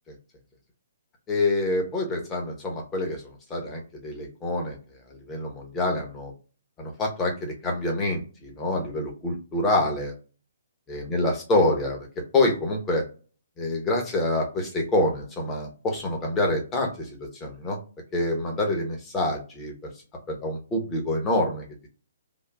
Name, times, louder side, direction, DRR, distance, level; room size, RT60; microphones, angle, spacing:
voice 1, 1.3-4.8 5.1-6.3 6.8-10.1 10.9-12.0 12.3-13.0 13.6-17.8 18.1-19.7 20.3-21.7, left 1 dB, 15° left, 0 dB, 1.0 m, -26 dB
3.7 x 2.5 x 2.3 m, 0.37 s
figure-of-eight pair, 125°, 0 cm